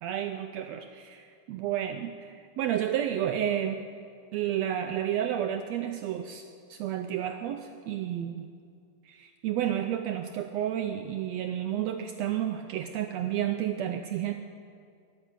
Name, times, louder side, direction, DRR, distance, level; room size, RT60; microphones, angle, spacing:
voice 1, 0.0-3.8 4.3-6.4 6.7-8.5 9.1-14.3, right 10 dB, 90° right, 6 dB, 1.5 m, -31 dB
14.0 x 11.0 x 8.2 m, 2.4 s
omnidirectional pair, 3.6 m